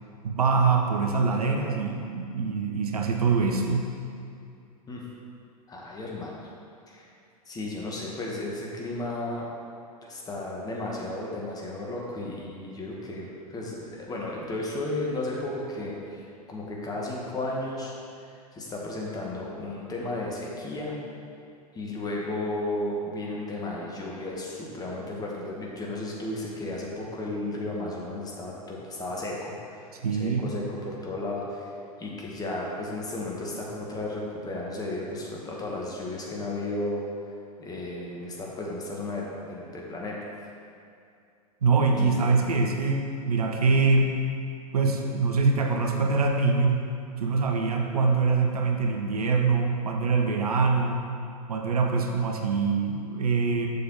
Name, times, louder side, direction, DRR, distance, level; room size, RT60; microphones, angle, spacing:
voice 1, 0.2-3.9 30.0-30.5 41.6-44.2 44.7-46.9 47.2-51.0 51.5-53.7, right 4 dB, 70° right, 2 dB, 0.9 m, -24 dB
voice 2, 5.7-6.4 6.9-7.1 7.4-9.5 10.0-16.2 16.5-17.9 18.2-20.9 21.7-29.8 30.1-31.7 32.0-37.0 37.6-40.2 42.0-42.3, left 2 dB, 20° left, -3 dB, 1.5 m, -34 dB
6.8 x 6.7 x 4.0 m, 2.5 s
figure-of-eight pair, 95°, 20 cm